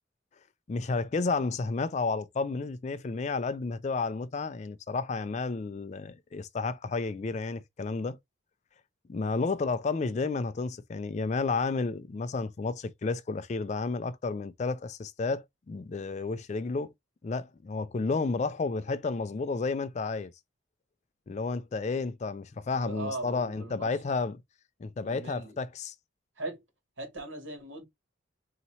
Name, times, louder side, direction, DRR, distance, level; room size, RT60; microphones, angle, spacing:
voice 1, 0.7-8.2 9.1-16.9 17.2-20.3 21.3-24.4 24.8-25.9, left 4 dB, 35° left, 0.3 m, -31 dB
voice 2, 22.7-24.0 25.0-25.6 26.4-26.6 27.0-27.8, right 2 dB, 70° right, 2.1 m, -39 dB
4.1 x 2.8 x 2.7 m
head